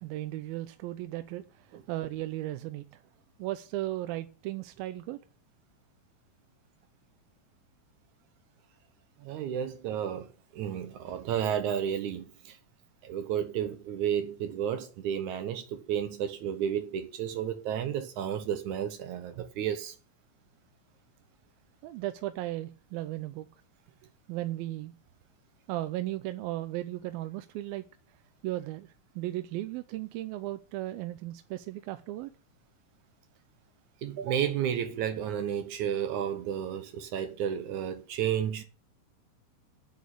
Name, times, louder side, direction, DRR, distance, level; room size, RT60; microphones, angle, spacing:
voice 1, 0.0-3.0 3.4-5.2 21.8-23.5 24.3-24.9 25.7-27.9 28.4-32.3, right 15 dB, 90° right, 2.5 m, -36 dB
voice 2, 9.2-12.6 13.0-19.9 34.0-38.6, right 9 dB, 70° right, 2.0 m, -32 dB
8.5 x 7.7 x 8.4 m
omnidirectional pair, 4.1 m